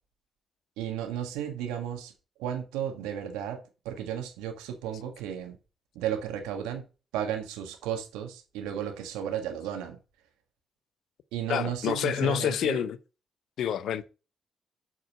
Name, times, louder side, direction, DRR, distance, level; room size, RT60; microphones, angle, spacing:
voice 1, 0.8-2.1 2.4-5.6 6.0-6.8 7.1-10.0 11.3-12.8, right 9 dB, 80° right, 1.6 m, -34 dB
voice 2, 11.5-13.0 13.6-14.0, left 9 dB, 70° left, 0.6 m, -28 dB
7.5 x 4.9 x 6.4 m
hypercardioid pair, 40°, 0 cm